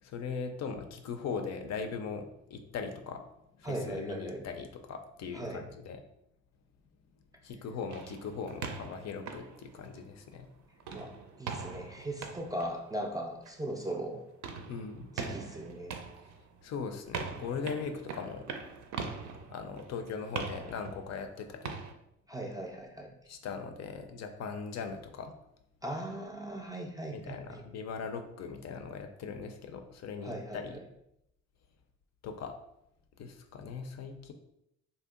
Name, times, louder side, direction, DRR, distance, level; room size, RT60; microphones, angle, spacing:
voice 1, 0.0-3.2 3.6-6.0 7.4-10.5 14.7-15.1 16.6-18.5 19.5-21.8 23.3-25.3 27.1-30.8 32.2-32.5 33.2-34.3, left 5 dB, 60° left, 6 dB, 0.5 m, -39 dB
voice 2, 3.6-4.4 5.3-5.7 10.9-11.1 11.4-14.2 15.1-16.0 22.3-23.1 25.8-27.6 30.2-30.8, right 1 dB, 15° right, 1 dB, 0.3 m, -38 dB
sound 1, 7.9-10.4 10.8-21.9, right 5 dB, 70° right, 0.5 m, -42 dB
2.6 x 2.0 x 3.6 m, 0.80 s
cardioid pair, 90°, 30 cm